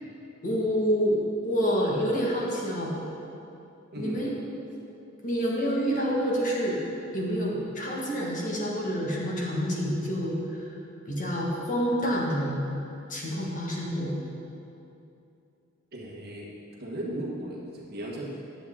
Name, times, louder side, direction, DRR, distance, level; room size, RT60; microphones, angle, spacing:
voice 1, 0.4-1.2 1.4-3.0 4.0-4.3 5.2-6.8 7.1-10.7 11.1-12.6 13.1-14.2, equal, 40° left, -4 dB, 1.7 m, -28 dB
voice 2, 3.9-4.2 14.0-14.3 15.9-16.5 16.8-18.4, right 1 dB, 50° right, -3 dB, 1.5 m, -36 dB
9.9 x 7.9 x 3.8 m, 2.7 s
head